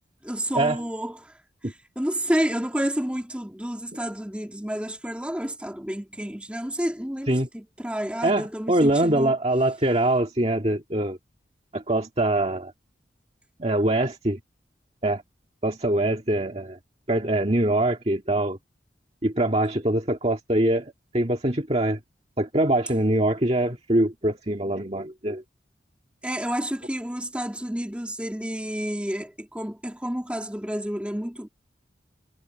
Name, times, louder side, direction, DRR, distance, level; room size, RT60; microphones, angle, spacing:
voice 1, 0.2-1.4 1.6-9.3 26.2-31.5, equal, 5° right, 2.5 m, -30 dB
voice 2, 8.2-11.2 11.7-12.7 13.6-14.4 15.0-15.2 15.6-16.8 17.1-18.6 19.2-22.0 22.4-25.4, right 1 dB, 35° right, 2.0 m, -23 dB
head